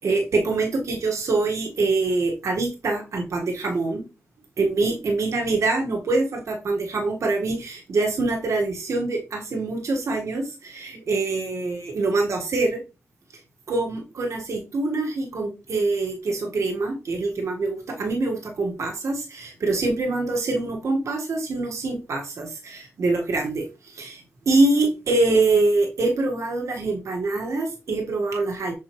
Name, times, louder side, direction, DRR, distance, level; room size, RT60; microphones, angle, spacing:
voice 1, 0.0-4.0 4.6-12.8 13.7-28.7, right 3 dB, 75° right, 0 dB, 1.8 m, -24 dB
7.4 x 4.8 x 3.2 m, 0.30 s
cardioid pair, 60°, 5 cm